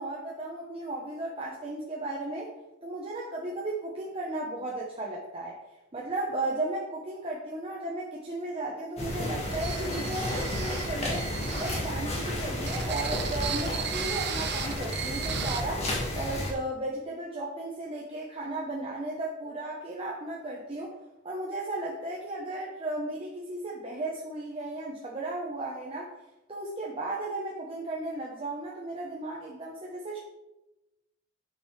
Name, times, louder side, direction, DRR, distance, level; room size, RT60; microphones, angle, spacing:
voice 1, 0.0-2.5 2.8-5.6 5.9-11.3 11.6-20.9 21.2-26.1 26.5-30.2, right 2 dB, 30° right, -3 dB, 1.0 m, -35 dB
sound 1, 9.0-16.5, left 1 dB, 30° left, 1.8 m, -32 dB
sound 2, 9.5-11.9 12.6-15.6, right 8 dB, 55° right, 0.7 m, -36 dB
9.6 x 6.1 x 3.3 m, 0.97 s
head